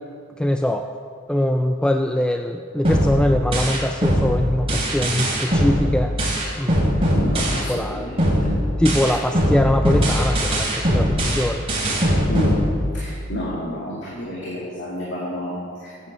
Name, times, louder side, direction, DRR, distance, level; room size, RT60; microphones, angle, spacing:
voice 1, 0.4-0.9 1.3-6.9 7.7-8.1 8.8-11.7, left 1 dB, 5° left, 5 dB, 0.3 m, -22 dB
sound 1, 2.8-7.9 8.2-13.2, equal, 30° right, 2.9 m, -21 dB
voice 2, 7.1-8.6 12.3-12.6 12.9-16.1, equal, 60° left, -6 dB, 2.3 m, -30 dB
9.0 x 8.4 x 7.3 m, 2.2 s
head